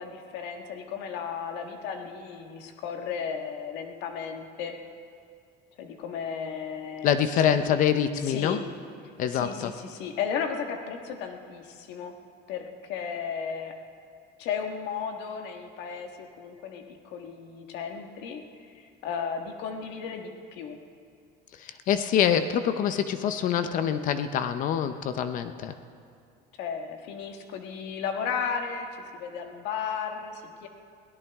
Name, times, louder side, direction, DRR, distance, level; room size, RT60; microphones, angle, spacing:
voice 1, 0.0-4.8 5.8-7.2 7.4-7.7 8.2-8.6 9.3-12.1 12.5-13.7 14.4-18.4 18.7-20.8 26.6-28.9 29.1-30.7, left 6 dB, 70° left, 4 dB, 1.6 m, -34 dB
voice 2, 7.0-8.6 9.2-9.7 21.6-25.7, left 9 dB, 45° left, 10 dB, 0.6 m, -25 dB
22.5 x 17.0 x 3.6 m, 2.3 s
cardioid pair, 170°, 18 cm